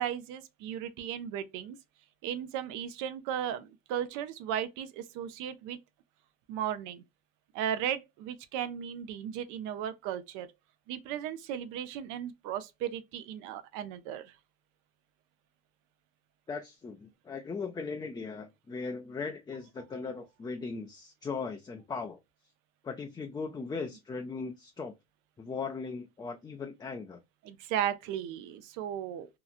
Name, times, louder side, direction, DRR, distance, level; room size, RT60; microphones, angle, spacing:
voice 1, 0.0-1.8 2.2-5.8 6.5-7.0 7.5-10.5 10.9-14.3 27.4-29.3, right 10 dB, 75° right, 0.6 m, -35 dB
voice 2, 16.5-22.2 22.8-24.9 25.4-27.2, left 4 dB, 15° left, 0.3 m, -38 dB
2.9 x 2.4 x 2.4 m
supercardioid pair, 95°, 31 cm